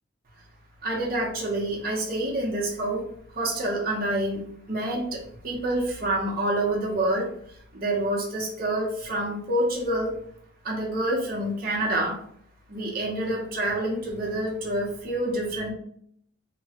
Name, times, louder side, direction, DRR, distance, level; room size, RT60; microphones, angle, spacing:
voice 1, 0.8-3.0 3.3-7.3 7.7-10.1 10.6-12.2 12.7-15.7, right 1 dB, 45° right, -2 dB, 0.8 m, -27 dB
2.9 x 2.1 x 2.8 m, 0.65 s
head